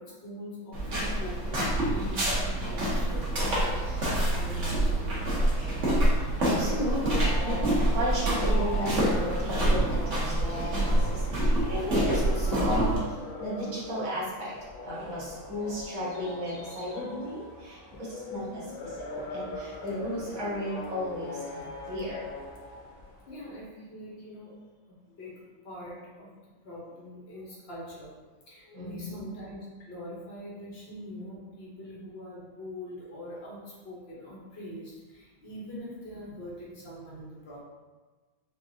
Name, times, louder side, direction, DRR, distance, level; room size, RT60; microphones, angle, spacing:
voice 1, 0.0-6.0 18.3-18.7 23.3-24.6 24.9-26.3 26.6-28.1 28.5-37.6, left 1 dB, 45° left, -5 dB, 0.8 m, -43 dB
sound 1, 0.7-13.0, right 1 dB, 45° right, 1.1 m, -26 dB
sound 2, 6.3-23.3, left 2 dB, 75° left, 1.6 m, -41 dB
voice 2, 6.4-14.5 14.8-22.3 28.6-29.2, equal, 70° right, -7 dB, 2.1 m, -35 dB
5.9 x 2.3 x 2.7 m, 1.3 s
omnidirectional pair, 2.2 m